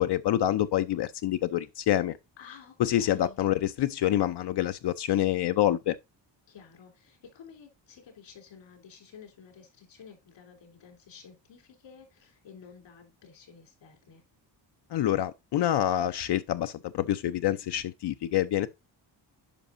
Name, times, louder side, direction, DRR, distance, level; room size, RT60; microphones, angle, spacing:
voice 1, 0.0-2.2 2.8-6.0 14.9-18.7, left 12 dB, 65° left, 0.6 m, -27 dB
voice 2, 2.4-3.4 6.5-14.2, left 7 dB, 80° left, 3.4 m, -52 dB
10.5 x 5.3 x 2.5 m
cardioid pair, 120°, 45 cm